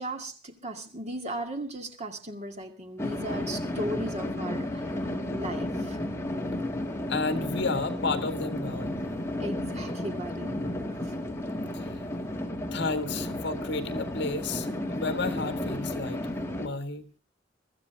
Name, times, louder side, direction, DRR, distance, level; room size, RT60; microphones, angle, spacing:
voice 1, 0.0-6.0 9.4-10.5, right 1 dB, 35° right, 5 dB, 2.2 m, -37 dB
sound 1, 3.0-16.7, left 1 dB, 15° left, 2.2 m, -33 dB
voice 2, 7.1-9.0 11.7-12.0 12.7-16.2 16.6-17.1, left 3 dB, 65° left, 8 dB, 1.8 m, -32 dB
23.5 x 14.5 x 3.4 m, 0.33 s
head